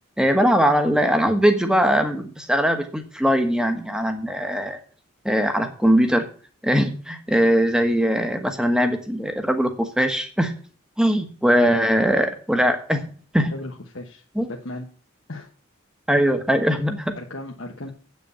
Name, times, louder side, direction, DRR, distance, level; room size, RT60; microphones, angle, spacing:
voice 1, 0.2-4.8 5.2-6.3 6.6-10.5 11.0-13.5 14.4-14.5 16.1-17.1, equal, 5° right, 6 dB, 1.3 m, -21 dB
voice 2, 13.5-14.2 14.5-14.9 15.3-15.5 17.1-17.9, left 1 dB, 65° left, 0 dB, 1.2 m, -35 dB
8.6 x 6.5 x 8.3 m, 0.41 s
head